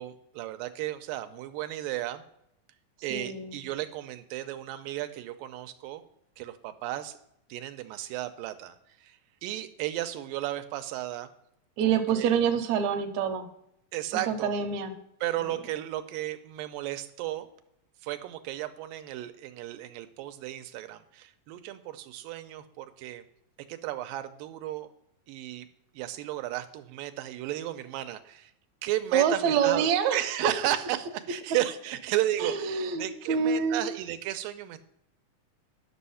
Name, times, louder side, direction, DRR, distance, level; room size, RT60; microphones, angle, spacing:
voice 1, 0.0-2.2 3.0-6.0 6.4-7.2 7.5-11.3 11.8-12.3 13.9-14.5 15.2-17.5 18.0-23.2 23.7-24.9 25.3-25.7 25.9-28.5 28.8-34.8, right 14 dB, 90° right, 8 dB, 2.3 m, -34 dB
voice 2, 3.1-3.6 11.8-13.5 14.3-14.9 29.1-30.2 32.4-33.9, right 7 dB, 70° right, 5 dB, 1.8 m, -26 dB
10.0 x 6.3 x 5.6 m, 0.76 s
omnidirectional pair, 4.0 m